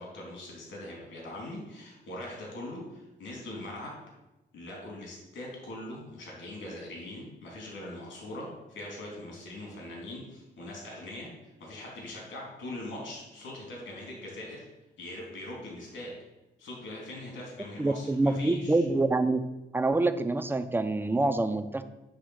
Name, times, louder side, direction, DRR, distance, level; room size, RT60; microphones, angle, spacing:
voice 1, 0.0-3.9 4.5-11.3 11.6-14.6 15.0-16.1 16.6-18.8, left 1 dB, 75° left, -2 dB, 3.1 m, -41 dB
voice 2, 17.8-19.4 19.7-21.8, right 2 dB, 10° right, 9 dB, 0.6 m, -26 dB
9.6 x 3.6 x 6.4 m, 1.0 s
cardioid pair, 90°, 20 cm